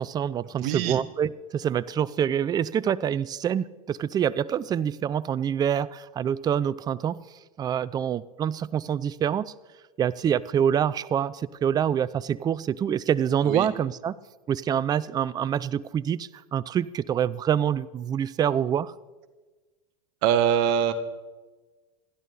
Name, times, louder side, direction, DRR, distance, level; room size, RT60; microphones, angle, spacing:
voice 1, 0.0-7.2 7.6-9.5 10.0-14.2 14.5-18.9, right 9 dB, 20° right, 0.5 m, -26 dB
voice 2, 0.6-1.0 13.4-13.7 20.2-20.9, right 9 dB, 50° right, 1.6 m, -23 dB
29.0 x 11.0 x 4.1 m
hypercardioid pair, 110°, 19 cm